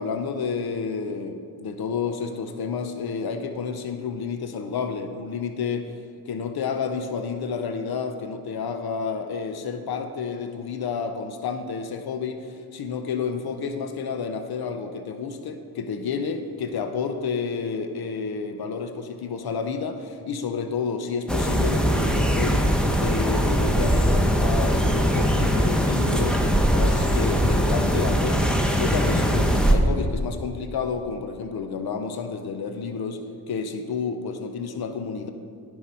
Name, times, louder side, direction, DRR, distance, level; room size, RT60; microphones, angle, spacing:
voice 1, 0.0-5.9 6.3-22.7 23.0-33.2 33.5-35.3, left 5 dB, 75° left, 7 dB, 0.7 m, -30 dB
sound 1, 21.3-29.7, equal, ahead, 0.9 m, -21 dB
10.0 x 4.7 x 5.5 m, 2.2 s
cardioid pair, 45°, 38 cm